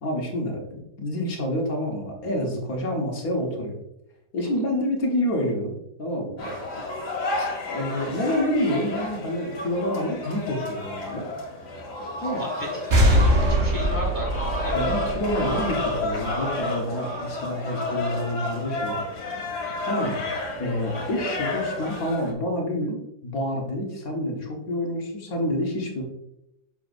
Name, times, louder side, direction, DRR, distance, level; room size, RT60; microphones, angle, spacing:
voice 1, 0.0-3.8 4.3-5.7 6.0-6.4 7.4-11.3 12.2-12.4 14.7-19.0 19.9-20.2 20.6-26.0, left 1 dB, 60° left, 0 dB, 1.8 m, -28 dB
sound 1, 6.4-22.3, left 2 dB, 75° left, 2.2 m, -31 dB
voice 2, 11.9-14.9, equal, 15° left, -1 dB, 1.3 m, -35 dB
sound 2, 12.9-16.4, equal, 40° right, 1.2 m, -22 dB
7.1 x 6.1 x 2.6 m, 0.83 s
omnidirectional pair, 1.8 m